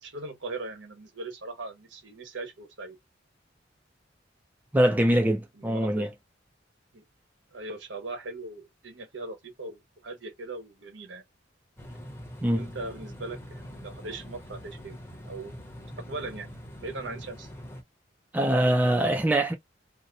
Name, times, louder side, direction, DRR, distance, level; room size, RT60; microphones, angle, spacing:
voice 1, 0.0-3.0 5.5-6.1 6.9-7.0 7.5-11.2 12.5-15.0 15.2-15.6 16.1-16.5 16.8-17.5, right 2 dB, 70° right, 1.2 m, -39 dB
voice 2, 4.7-6.1 12.4-12.7 18.3-19.5, right 1 dB, 10° right, 0.4 m, -23 dB
sound 1, 11.8-17.8, equal, 10° left, 0.8 m, -43 dB
2.8 x 2.1 x 3.9 m
head